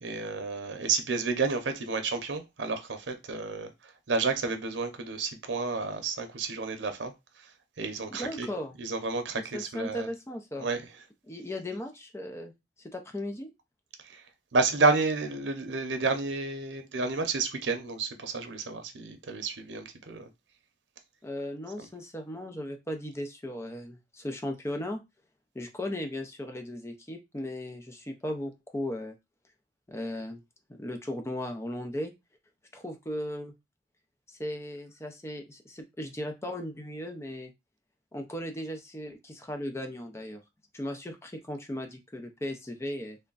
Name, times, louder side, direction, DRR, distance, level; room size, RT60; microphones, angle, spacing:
voice 1, 0.0-7.1 7.4-7.5 7.8-8.5 8.8-10.1 10.6-10.8 14.0-14.2 14.5-20.3 21.8-21.9, right 4 dB, 90° right, 0.7 m, -30 dB
voice 2, 8.1-8.7 9.5-10.7 11.3-12.5 12.8-13.5 21.2-25.0 25.5-29.2 29.9-30.4 30.7-32.1 32.7-33.5 34.3-37.5 38.1-40.4 40.7-43.2, left 1 dB, 15° left, 0.6 m, -37 dB
3.4 x 2.2 x 3.9 m
head